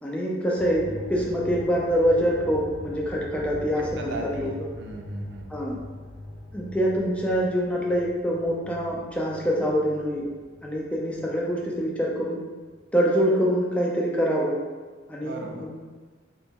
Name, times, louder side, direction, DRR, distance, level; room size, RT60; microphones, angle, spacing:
voice 1, 0.0-4.5 5.5-5.8 6.5-10.3 10.6-12.4 12.9-14.5 15.1-15.7, equal, 5° left, -3 dB, 0.4 m, -25 dB
sound 1, 0.6-12.2 12.5-12.6, left 1 dB, 65° left, 0.7 m, -42 dB
voice 2, 3.8-5.7 15.2-15.7, right 3 dB, 65° right, 2 dB, 0.4 m, -38 dB
3.0 x 2.1 x 3.4 m, 1.4 s
head